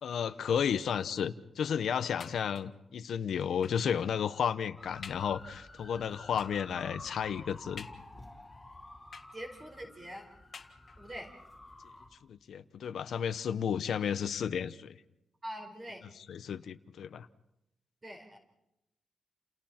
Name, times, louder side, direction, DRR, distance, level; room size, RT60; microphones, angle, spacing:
voice 1, 0.0-7.9 12.3-15.0 16.3-17.3, left 8 dB, 75° left, 12 dB, 0.8 m, -33 dB
sound 1, 2.2-2.9 3.6-3.9 4.5-4.6 5.0-5.4 6.4-6.7 7.8-8.4 9.1-9.7 10.5-11.2 12.0-12.1 12.4-12.5, left 5 dB, 45° left, 1.8 m, -50 dB
sound 2, 4.8-12.1, left 1 dB, 10° left, 4.6 m, -51 dB
voice 2, 9.3-10.2 11.0-11.3 15.4-16.0 18.0-18.4, equal, 20° right, 2 dB, 4.9 m, -43 dB
30.0 x 29.0 x 4.4 m, 0.87 s
wide cardioid pair, 170°, 0 cm